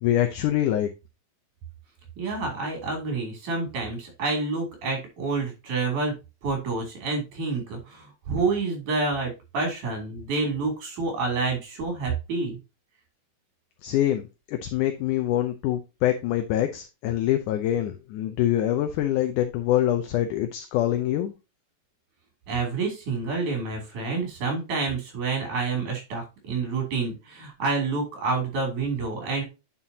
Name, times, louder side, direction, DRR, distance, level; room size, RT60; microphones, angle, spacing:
voice 1, 0.0-0.9 13.8-21.3, left 12 dB, 75° left, 2.1 m, -25 dB
voice 2, 2.2-6.1 6.4-12.6 22.5-29.4, right 3 dB, 60° right, 4.5 m, -28 dB
9.6 x 5.8 x 2.8 m
omnidirectional pair, 4.0 m